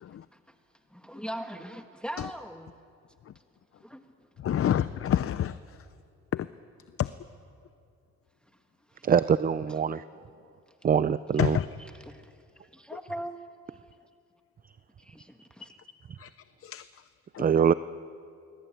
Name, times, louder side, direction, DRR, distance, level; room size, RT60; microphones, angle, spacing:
voice 1, 0.9-2.7 3.8-4.3 8.9-9.1 12.1-12.4 12.7-13.4 13.7-13.8 15.0-15.7, equal, 5° left, 6 dB, 1.3 m, -40 dB
voice 2, 4.4-5.9 6.3-6.5 7.0-7.1 11.4-11.7 12.9-13.0 15.6-15.7 16.2-16.3 16.6-17.1 17.3-17.5, left 10 dB, 50° left, 14 dB, 0.6 m, -29 dB
voice 3, 9.0-10.0 10.8-11.6 17.4-17.7, right 7 dB, 30° right, 15 dB, 0.5 m, -23 dB
23.5 x 21.5 x 9.0 m, 2.5 s
cardioid pair, 90°, 30 cm